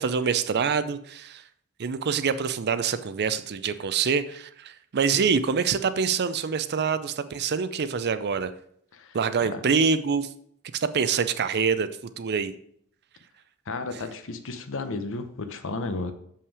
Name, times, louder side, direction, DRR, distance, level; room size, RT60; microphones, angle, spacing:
voice 1, 0.0-1.4 1.8-8.5 9.1-10.3 10.7-12.5, right 6 dB, 50° right, 13 dB, 0.5 m, -25 dB
voice 2, 13.7-16.1, left 3 dB, 60° left, 9 dB, 0.8 m, -33 dB
7.2 x 5.7 x 4.8 m, 0.67 s
head